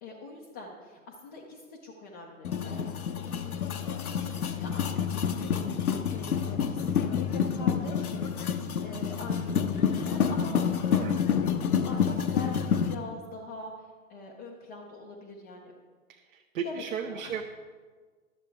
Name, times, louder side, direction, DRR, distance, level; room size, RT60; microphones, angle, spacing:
voice 1, 0.0-3.2 3.4-8.4 8.8-10.6 11.9-15.7 16.6-17.4, left 3 dB, 15° left, -5 dB, 0.3 m, -43 dB
sound 1, 2.4-12.9, left 7 dB, 85° left, 0.8 m, -28 dB
voice 2, 16.1-17.4, right 7 dB, 70° right, 2 dB, 0.8 m, -35 dB
11.5 x 7.3 x 3.4 m, 1.5 s
hypercardioid pair, 120°, 42 cm